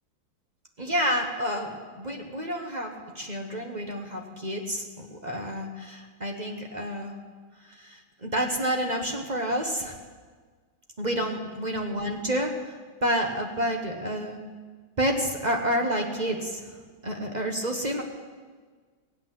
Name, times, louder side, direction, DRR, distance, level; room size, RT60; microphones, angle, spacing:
voice 1, 0.8-7.2 7.6-10.0 11.0-12.8 13.0-14.5 15.0-18.0, equal, 25° right, 2 dB, 1.0 m, -29 dB
16.5 x 8.5 x 7.5 m, 1.5 s
omnidirectional pair, 2.1 m